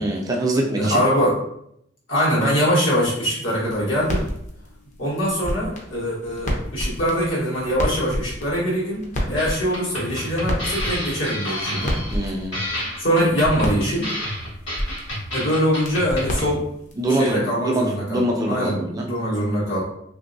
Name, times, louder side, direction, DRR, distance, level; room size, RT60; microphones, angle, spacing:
voice 1, 0.0-1.0 12.1-12.6 17.0-19.1, right 1 dB, 20° right, 0 dB, 0.4 m, -24 dB
voice 2, 0.8-1.4 2.1-4.2 5.0-12.0 13.0-14.1 15.3-16.6 17.1-19.8, equal, 85° left, -6 dB, 1.4 m, -23 dB
sound 1, 3.6-17.1, equal, 40° left, 0.6 m, -31 dB
sound 2, 9.4-16.5, equal, 70° left, 1.4 m, -30 dB
3.0 x 2.7 x 2.6 m, 0.75 s
head